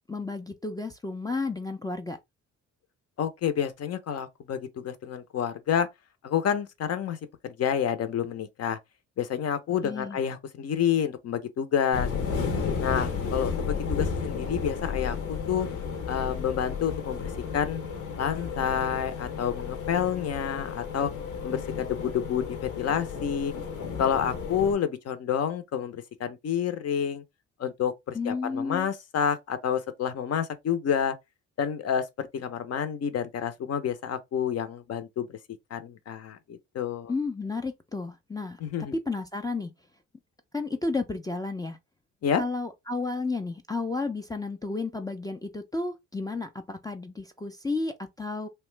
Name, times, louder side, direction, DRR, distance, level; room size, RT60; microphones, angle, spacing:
voice 1, 0.0-2.2 9.8-10.2 28.1-28.9 37.1-38.6 38.9-39.7 40.5-41.8 42.4-48.5, left 3 dB, 15° left, 0.4 m, -32 dB
voice 2, 3.2-5.9 6.2-7.2 7.4-8.8 9.2-12.1 12.8-15.7 16.1-17.8 18.2-21.1 21.4-23.5 24.0-27.2 27.6-31.2 31.6-35.3 35.7-37.1 38.6-39.0 42.2-42.4, left 8 dB, 55° left, 0.7 m, -29 dB
sound 1, 11.9-24.7, left 5 dB, 80° left, 0.9 m, -33 dB
2.9 x 2.2 x 3.2 m
cardioid pair, 90°, 30 cm